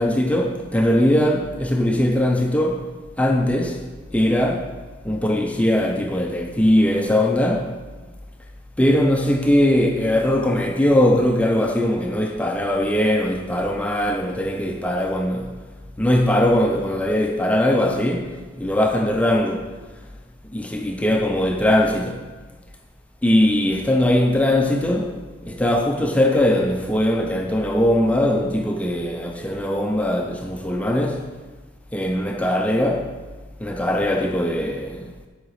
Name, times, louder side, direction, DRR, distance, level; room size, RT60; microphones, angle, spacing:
voice 1, 0.0-3.8 4.1-4.8 5.0-7.8 8.8-15.6 16.0-19.7 20.5-22.3 23.2-31.3 31.9-33.2 33.6-35.1, left 1 dB, 5° left, 0.4 m, -20 dB
7.6 x 5.7 x 4.9 m
head